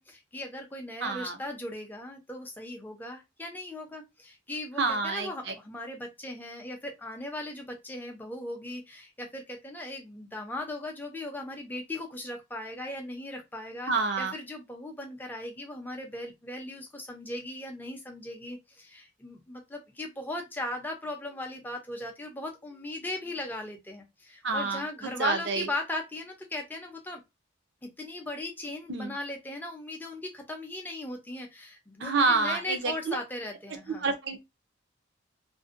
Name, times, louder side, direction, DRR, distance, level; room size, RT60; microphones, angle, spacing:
voice 1, 0.0-27.2 27.8-34.1, left 2 dB, 10° left, 0.5 m, -38 dB
voice 2, 1.0-1.4 4.8-5.5 13.9-14.3 24.4-25.7 28.9-29.1 32.0-33.2 34.0-34.4, right 3 dB, 60° right, 0.5 m, -28 dB
2.6 x 2.1 x 2.4 m
head